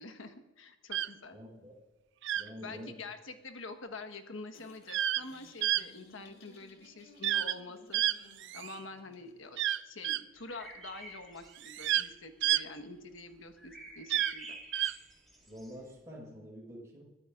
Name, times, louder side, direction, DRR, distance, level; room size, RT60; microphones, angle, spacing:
voice 1, 0.0-1.4 2.6-8.0 8.5-9.6 9.8-14.6, left 3 dB, 90° left, 6 dB, 1.4 m, -46 dB
sound 1, 0.9-1.1 2.2-2.5 4.9-5.2 5.6-5.8 7.2-7.6 7.9-8.8 9.6-10.2 11.6-12.1 12.4-12.6 14.1-14.3 14.7-14.9, right 12 dB, 65° right, 0.4 m, -30 dB
voice 2, 1.3-1.7 2.3-2.9 15.5-17.0, equal, 15° right, -6 dB, 5.2 m, -47 dB
sound 2, 4.5-9.5, left 2 dB, 55° left, 2.7 m, -59 dB
sound 3, 10.3-12.1 12.5-12.6 12.9-15.8, right 1 dB, ahead, 5.0 m, -50 dB
22.0 x 14.0 x 2.5 m, 1.1 s
head